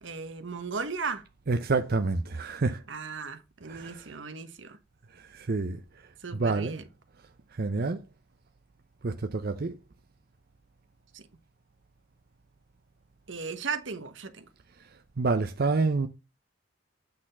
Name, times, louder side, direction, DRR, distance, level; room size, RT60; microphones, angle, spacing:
voice 1, 0.0-1.2 2.9-4.8 6.2-6.8 11.1-11.2 13.3-14.5, right 4 dB, 85° right, 1.2 m, -36 dB
voice 2, 1.5-2.8 3.7-4.0 5.3-5.8 6.4-6.8 7.6-8.0 9.0-9.8 15.2-16.1, right 3 dB, 55° right, 0.6 m, -27 dB
8.7 x 4.2 x 5.5 m
head